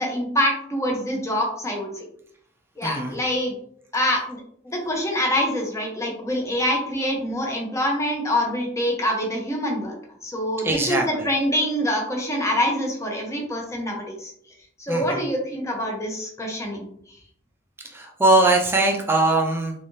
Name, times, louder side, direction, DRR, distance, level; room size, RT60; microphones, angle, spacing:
voice 1, 0.0-1.9 2.8-3.5 3.9-10.0 10.2-14.3 14.9-16.9, equal, 15° left, 0 dB, 0.8 m, -25 dB
voice 2, 2.8-3.2 10.6-11.0 14.9-15.2 17.9-19.7, right 2 dB, 15° right, 0 dB, 0.5 m, -20 dB
3.5 x 3.3 x 2.7 m, 0.66 s
head